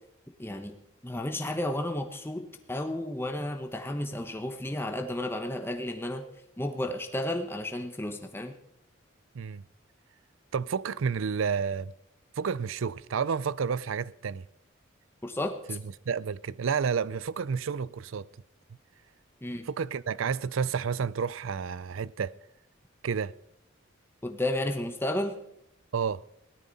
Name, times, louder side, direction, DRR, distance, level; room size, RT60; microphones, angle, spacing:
voice 1, 0.4-0.8 1.0-6.2 6.6-8.5 15.2-15.8 19.4-19.7 24.2-25.4, left 1 dB, 10° left, 1.1 m, -32 dB
voice 2, 10.5-11.9 12.4-14.4 15.7-15.8 16.1-18.3 19.7-22.3 23.0-23.3 25.9-26.2, right 6 dB, 75° right, 0.5 m, -30 dB
17.5 x 13.0 x 4.1 m
head